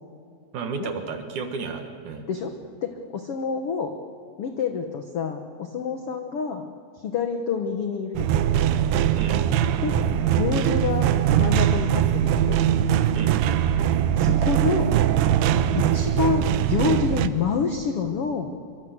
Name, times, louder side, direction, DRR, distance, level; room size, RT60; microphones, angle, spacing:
voice 1, 0.5-2.3 9.1-9.4 13.1-13.4, right 5 dB, 60° right, 6 dB, 2.7 m, -32 dB
voice 2, 2.8-3.9 4.4-6.6 7.0-8.4 9.8-10.0 10.3-12.6 13.7-13.9 14.2-14.9 15.7-18.5, left 6 dB, 80° left, 5 dB, 1.2 m, -27 dB
sound 1, 8.2-17.3, right 10 dB, 85° right, 2.9 m, -21 dB
24.5 x 24.5 x 8.0 m, 2.2 s
omnidirectional pair, 4.6 m